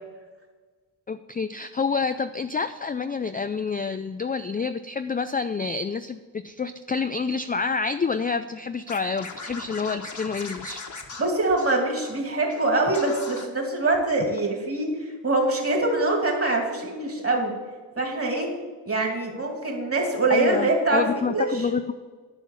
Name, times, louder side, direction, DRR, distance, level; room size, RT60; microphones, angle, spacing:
voice 1, 1.1-10.8 20.3-21.9, left 5 dB, 20° left, 10 dB, 0.3 m, -28 dB
Scratching (performance technique), 8.9-12.2 12.5-12.6 12.9-13.4, left 4 dB, 40° left, 1.4 m, -39 dB
voice 2, 11.2-17.5 18.0-18.5 18.9-21.7, right 2 dB, 30° right, 1 dB, 2.6 m, -24 dB
11.0 x 5.7 x 7.2 m, 1.4 s
cardioid pair, 85°, 45 cm